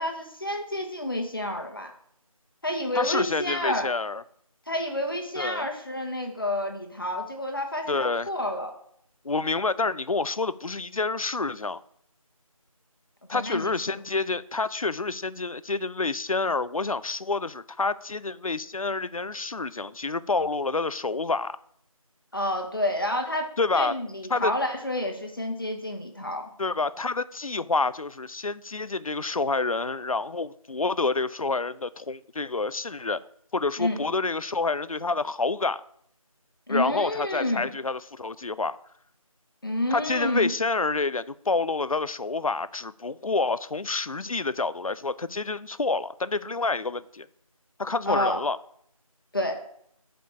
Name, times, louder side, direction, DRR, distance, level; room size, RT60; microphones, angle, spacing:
voice 1, 0.0-1.9 2.6-3.9 4.7-8.7 13.3-14.0 22.3-23.5 23.7-26.5 33.8-34.0 36.7-37.7 39.6-40.5 48.1-48.4 49.3-49.6, left 1 dB, 40° left, 1.1 m, -29 dB
voice 2, 2.9-4.2 5.4-5.7 7.9-8.3 9.2-11.8 13.3-21.6 23.6-24.0 24.3-24.5 26.6-33.2 33.5-35.8 36.7-38.8 39.9-47.3 47.8-48.6, left 3 dB, 70° left, 0.5 m, -28 dB
6.6 x 5.0 x 6.8 m
figure-of-eight pair, 175°, 19 cm